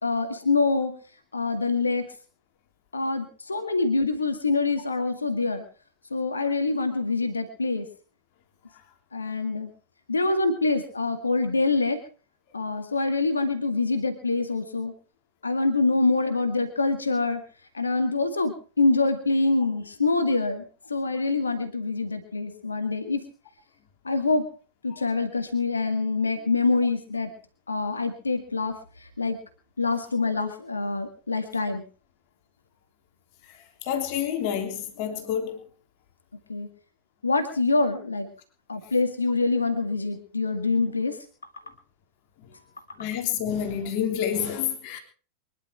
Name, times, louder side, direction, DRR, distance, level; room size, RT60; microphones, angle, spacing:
voice 1, 0.0-1.0 1.3-2.1 2.9-5.6 6.1-7.9 9.1-9.7 10.1-12.0 12.5-14.9 15.4-17.4 17.7-23.2 24.0-24.5 24.8-27.3 27.7-29.4 29.8-31.8 36.5-36.7 37.2-38.3 38.7-41.2 42.5-42.6, left 3 dB, 85° left, 1.9 m, -25 dB
voice 2, 33.8-35.6 43.0-45.0, left 9 dB, 50° left, 3.5 m, -28 dB
24.0 x 11.5 x 4.6 m
figure-of-eight pair, 90°, 0 cm